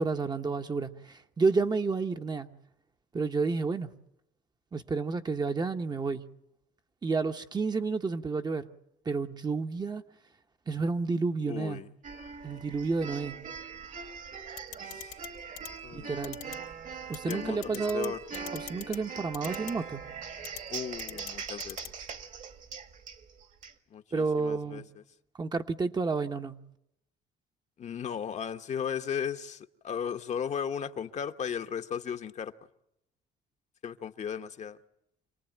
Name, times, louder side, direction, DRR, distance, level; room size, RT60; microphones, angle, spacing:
voice 1, 0.0-2.5 3.1-3.9 4.7-6.3 7.0-8.7 9.0-10.0 10.7-11.8 12.4-13.4 15.9-16.4 17.1-18.1 18.5-20.0 24.1-24.8 25.4-26.6, right 4 dB, 25° right, 1.1 m, -30 dB
voice 2, 11.5-11.9 14.9-15.2 15.8-16.1 17.2-18.2 20.7-21.8 23.9-24.8 27.8-32.5 33.8-34.8, left 7 dB, 45° left, 1.1 m, -36 dB
sound 1, 12.0-23.7, right 6 dB, 50° right, 1.9 m, -41 dB
sound 2, 14.6-15.3 15.6-15.7 16.2-16.6 17.1-17.3 17.6-18.1 18.3-19.0 19.3-19.7 20.4-20.6 21.0-21.3 21.6-21.9, left 14 dB, 80° left, 2.4 m, -41 dB
27.0 x 19.0 x 9.1 m
cardioid pair, 110°, 17 cm